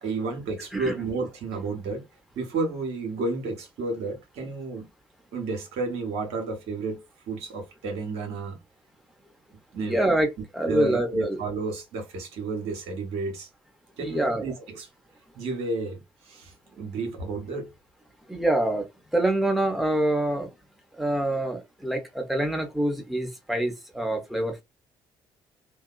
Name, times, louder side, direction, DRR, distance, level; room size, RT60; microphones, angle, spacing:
voice 1, 0.0-2.0 2.3-4.9 5.3-7.0 7.3-8.6 9.7-10.0 10.7-13.5 14.0-14.9 15.3-17.7, right 3 dB, 60° right, 1.0 m, -31 dB
voice 2, 9.8-11.4 14.0-14.4 18.3-18.8 19.1-20.5 21.0-24.6, right 1 dB, ahead, 1.0 m, -25 dB
2.7 x 2.3 x 2.3 m
figure-of-eight pair, 50°, 12 cm